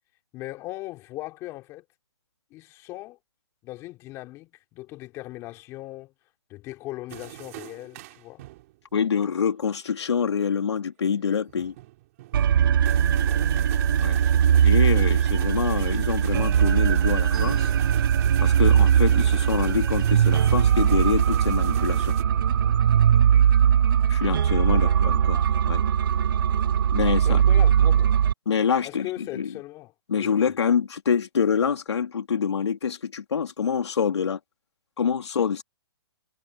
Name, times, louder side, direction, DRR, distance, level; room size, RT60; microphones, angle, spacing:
voice 1, 0.3-1.8 2.5-3.2 3.6-6.1 6.5-8.4 13.3-13.6 24.7-25.3 27.3-28.2 28.8-30.5, left 18 dB, 20° left, 4.2 m, -39 dB
sound 1, 7.1-8.8 9.4-9.6 11.1-22.2, right 18 dB, 30° right, 5.4 m, -42 dB
voice 2, 8.9-11.7 14.0-14.2 14.6-17.7 18.4-22.1 24.1-25.8 26.9-27.4 28.5-29.5 30.1-34.4 35.0-35.6, left 6 dB, 80° left, 3.3 m, -26 dB
sound 2, 12.3-28.3, right 9 dB, 50° right, 0.6 m, -20 dB
hypercardioid pair, 165°, 14 cm